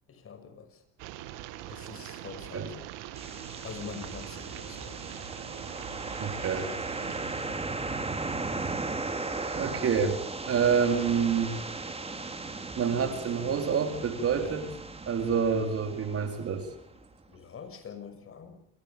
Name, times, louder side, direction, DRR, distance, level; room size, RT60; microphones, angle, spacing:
voice 1, 0.1-0.8 1.7-2.7 3.6-5.1 14.4-14.6 17.3-18.6, left 6 dB, 40° left, 8 dB, 6.6 m, -44 dB
sound 1, 1.0-7.4, right 13 dB, 70° right, 2.2 m, -43 dB
sound 2, 3.2-17.0, right 3 dB, 20° right, 3.9 m, -37 dB
voice 2, 6.2-6.7 9.3-10.2 10.5-11.6 12.8-14.6 15.1-16.7, right 6 dB, 45° right, 6 dB, 4.1 m, -27 dB
27.5 x 19.0 x 7.0 m, 0.65 s
hypercardioid pair, 75°, 33 cm